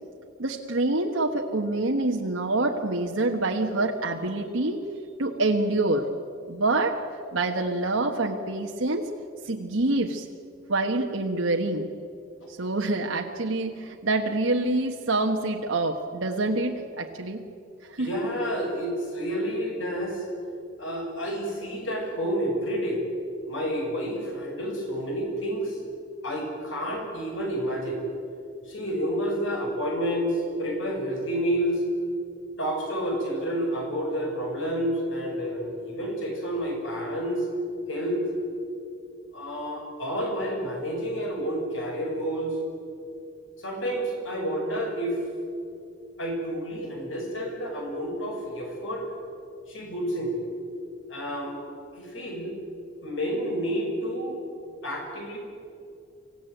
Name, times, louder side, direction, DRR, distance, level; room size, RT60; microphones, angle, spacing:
voice 1, 0.4-4.8 5.2-6.1 6.5-7.0 7.3-9.1 9.4-10.3 10.7-11.9 12.5-17.4 17.8-18.1, right 2 dB, 80° right, 1 dB, 1.4 m, -26 dB
voice 2, 18.0-20.2 20.8-23.0 23.5-25.8 26.2-28.0 28.7-31.8 32.6-37.5 37.9-38.2 39.3-42.6 43.6-45.2 46.2-49.1 49.7-50.3 51.1-51.6 51.9-52.6 53.0-54.4 54.8-55.4, equal, 70° left, 1 dB, 6.5 m, -29 dB
25.0 x 16.0 x 9.2 m, 2.6 s
head